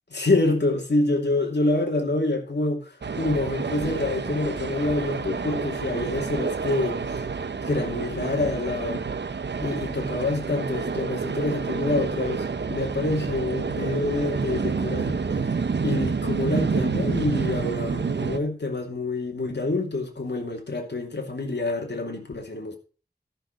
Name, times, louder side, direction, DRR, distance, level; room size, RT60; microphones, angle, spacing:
voice 1, 0.1-7.2 7.7-9.1 9.6-15.4 15.8-22.8, left 2 dB, 75° left, 2.7 m, -27 dB
sound 1, 3.0-18.4, right 5 dB, 80° right, 0.8 m, -28 dB
13.5 x 6.4 x 5.2 m
wide cardioid pair, 50°, 18 cm